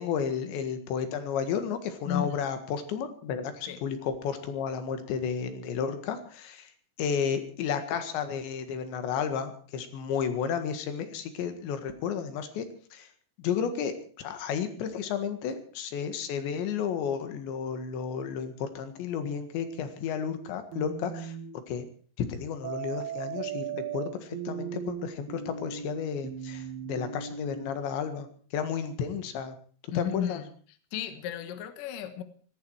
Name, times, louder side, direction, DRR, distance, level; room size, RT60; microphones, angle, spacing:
voice 1, 0.0-6.7 7.0-12.7 12.9-13.1 13.4-21.4 21.7-21.9 22.2-28.3 28.5-29.6 30.0-30.4, left 7 dB, 90° left, 9 dB, 4.1 m, -32 dB
voice 2, 2.1-2.4 3.7-3.8 29.9-30.5 30.9-32.2, left 10 dB, 60° left, 10 dB, 2.7 m, -33 dB
sound 1, 20.7-21.5 22.6-27.7, right 8 dB, 70° right, 3.3 m, -37 dB
18.5 x 15.5 x 4.8 m, 0.43 s
omnidirectional pair, 5.0 m